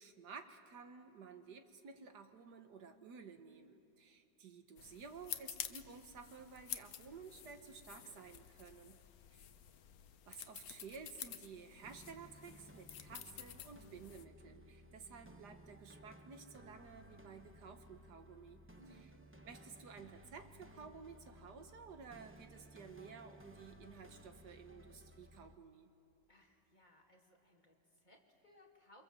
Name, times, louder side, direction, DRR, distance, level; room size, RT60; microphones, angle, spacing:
voice 1, 0.0-9.0 9.3-9.5 10.3-18.6 19.4-25.9, right 5 dB, 70° right, 7 dB, 1.7 m, -54 dB
sound 1, 4.8-14.2, left 10 dB, 65° left, 1.2 m, -50 dB
voice 2, 9.0-9.7 18.8-19.3 26.3-29.0, left 1 dB, 25° left, 0 dB, 2.6 m, -66 dB
sound 2, 11.8-25.5, equal, 10° right, 0.6 m, -59 dB
28.0 x 25.0 x 7.5 m, 2.5 s
omnidirectional pair, 1.9 m